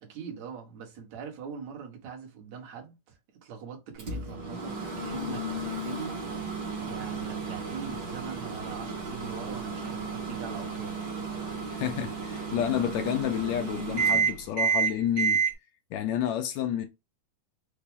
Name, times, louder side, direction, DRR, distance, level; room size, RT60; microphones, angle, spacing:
voice 1, 0.0-6.1 6.8-11.1, right 6 dB, 65° right, 2.4 m, -42 dB
Microwave oven, 4.0-15.5, right 5 dB, 50° right, 1.4 m, -31 dB
voice 2, 11.7-15.4 15.9-16.9, left 10 dB, 80° left, 1.7 m, -30 dB
5.8 x 2.2 x 3.6 m
omnidirectional pair, 3.6 m